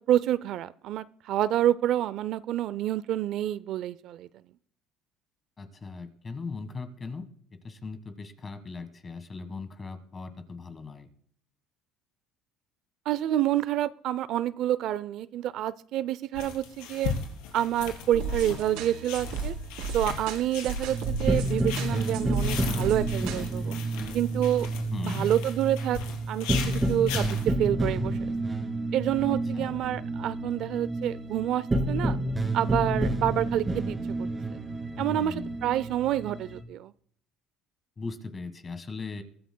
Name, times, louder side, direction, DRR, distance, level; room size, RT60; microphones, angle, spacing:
voice 1, 0.1-4.3 13.1-17.1 17.5-19.5 19.9-23.7 24.1-24.7 25.0-26.0 26.3-28.2 28.9-32.2 32.5-34.3 35.0-36.9, right 12 dB, 55° right, 17 dB, 0.4 m, -28 dB
voice 2, 5.6-7.2 7.6-11.1 24.9-25.3 29.5-29.8 35.0-35.6 38.0-39.2, left 4 dB, 20° left, 10 dB, 1.5 m, -38 dB
sound 1, 16.3-27.5, left 7 dB, 90° left, 3.2 m, -39 dB
sound 2, 18.1-23.5, right 4 dB, 85° right, 3.7 m, -35 dB
sound 3, 20.9-36.6, right 1 dB, 15° right, 2.6 m, -30 dB
23.0 x 13.5 x 2.2 m, 0.63 s
cardioid pair, 140°, 0 cm